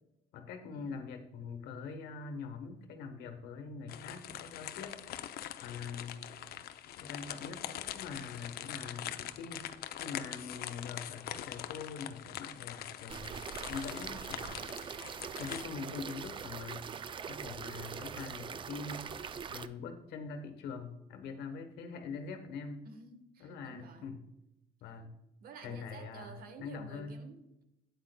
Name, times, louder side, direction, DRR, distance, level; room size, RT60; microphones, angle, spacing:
voice 1, 0.3-5.0 5.6-6.2 7.0-9.7 10.0-13.3 13.7-14.7 15.4-19.1 19.5-22.8 23.4-24.2 24.8-25.1 25.6-27.2, left 5 dB, 80° left, 1.2 m, -43 dB
sound 1, 3.9-15.6, left 11 dB, 65° left, 0.5 m, -43 dB
sound 2, 13.1-19.7, right 7 dB, 30° right, 0.3 m, -42 dB
voice 2, 22.8-24.1 25.4-27.6, right 5 dB, 60° right, 1.1 m, -51 dB
12.0 x 8.9 x 2.2 m
cardioid pair, 110°, 17 cm